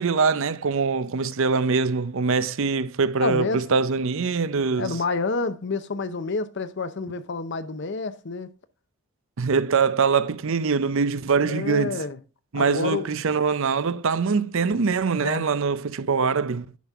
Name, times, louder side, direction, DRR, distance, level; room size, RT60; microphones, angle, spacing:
voice 1, 0.0-5.0 9.4-12.0 12.5-16.7, right 5 dB, 60° right, 0.5 m, -23 dB
voice 2, 3.2-3.6 4.8-8.5 11.4-12.2 12.5-13.4 15.1-15.4, left 3 dB, 50° left, 0.7 m, -29 dB
10.5 x 5.9 x 3.5 m
head